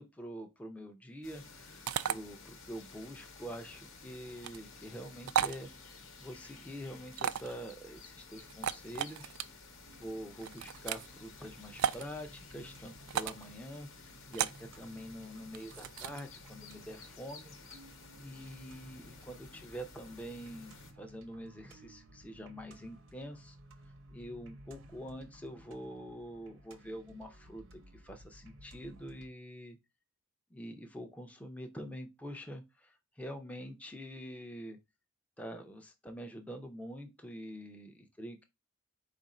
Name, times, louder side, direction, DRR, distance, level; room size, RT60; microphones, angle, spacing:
voice 1, 0.0-9.3 10.0-17.5 18.2-23.6 24.1-29.8 30.5-34.8 35.4-38.4, equal, 5° left, 4 dB, 0.5 m, -46 dB
sound 1, 1.2-20.9, left 4 dB, 65° left, 1.0 m, -54 dB
sound 2, 1.9-2.2 4.4-4.6 5.3-5.6 7.1-7.6 8.5-9.4 10.4-11.1 11.8-12.0 13.1-13.4 14.3-14.6 15.5-16.2, right 9 dB, 80° right, 0.3 m, -34 dB
sound 3, 9.8-29.3, right 1 dB, 60° right, 0.7 m, -57 dB
4.5 x 2.5 x 4.1 m, 0.23 s
head